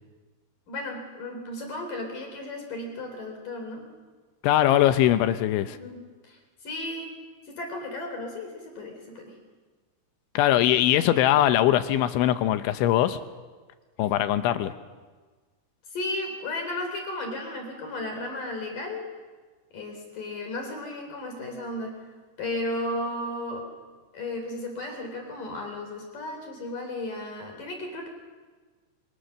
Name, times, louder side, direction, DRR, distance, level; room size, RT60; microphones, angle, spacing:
voice 1, 0.7-3.9 5.6-7.1 7.5-9.3 15.9-19.1 19.7-21.9 22.4-23.6 24.1-28.1, left 1 dB, 45° left, 3 dB, 5.0 m, -34 dB
voice 2, 4.4-5.8 10.3-13.2 14.0-14.7, left 12 dB, 80° left, 10 dB, 3.3 m, -21 dB
27.0 x 24.0 x 6.6 m, 1.4 s
omnidirectional pair, 5.5 m